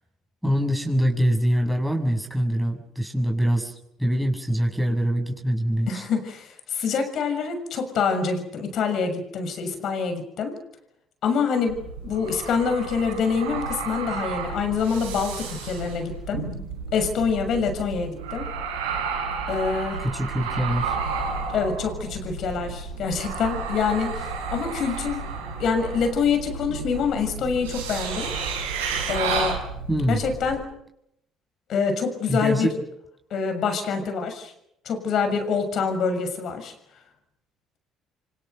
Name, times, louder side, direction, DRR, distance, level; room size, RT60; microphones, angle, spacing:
voice 1, 0.4-6.0 20.0-21.0 29.9-30.2 32.3-32.7, equal, ahead, 1 dB, 7.5 m, -24 dB
voice 2, 5.9-10.6 11.2-16.5 16.9-18.5 19.5-20.0 21.5-25.3 25.6-28.3 29.1-29.6 29.9-30.7 31.7-32.7 33.3-34.5 34.8-36.7, left 5 dB, 55° left, 7 dB, 6.6 m, -26 dB
sound 1, 11.7-30.5, right 5 dB, 85° right, 6.3 m, -32 dB
29.5 x 25.5 x 6.8 m, 0.81 s
hypercardioid pair, 60°, 0 cm